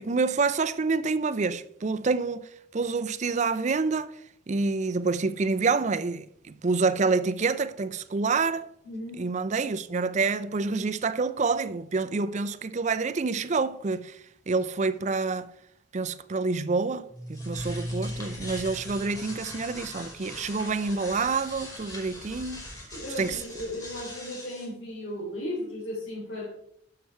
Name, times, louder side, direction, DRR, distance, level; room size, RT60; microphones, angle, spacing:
voice 1, 0.0-2.5 2.7-4.1 4.5-8.7 9.2-14.2 14.5-15.5 15.9-22.6 23.2-23.4, right 4 dB, 40° right, 0.5 m, -27 dB
voice 2, 8.8-9.2 22.9-26.5, left 1 dB, 65° left, 3.6 m, -35 dB
sound 1, 17.1-24.6, left 1 dB, 20° left, 4.6 m, -39 dB
11.5 x 6.7 x 4.4 m
head